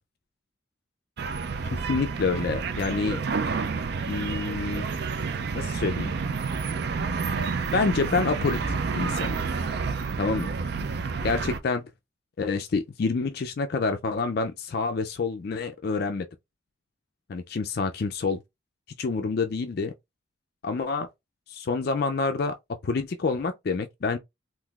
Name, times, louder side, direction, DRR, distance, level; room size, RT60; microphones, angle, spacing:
sound 1, 1.2-11.6, right 5 dB, 50° right, 0.4 m, -29 dB
voice 1, 1.7-3.2 4.1-4.9 5.5-6.1 7.7-9.4 10.2-10.5 11.2-11.9 12.4-16.3 17.3-18.4 19.0-19.9 20.6-21.1 21.5-22.6 22.8-24.2, left 4 dB, 50° left, 0.4 m, -27 dB
3.7 x 2.5 x 2.4 m
head